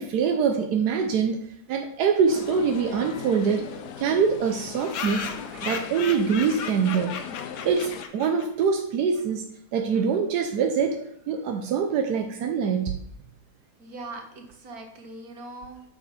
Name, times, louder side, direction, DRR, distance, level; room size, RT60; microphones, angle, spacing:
voice 1, 0.0-1.4 1.7-3.6 4.0-5.3 5.5-7.2 7.6-9.5 9.7-13.0, right 6 dB, 90° right, 5 dB, 1.3 m, -24 dB
sound 1, 2.3-8.1, left 8 dB, 85° left, 1.2 m, -39 dB
sound 2, 2.7-2.8 3.1-3.2 3.4-3.5 3.7-3.8 4.4-8.6, left 6 dB, 60° left, 1.0 m, -36 dB
voice 2, 13.8-15.8, right 2 dB, 70° right, 3 dB, 1.9 m, -41 dB
7.5 x 6.0 x 5.1 m, 0.75 s
omnidirectional pair, 1.7 m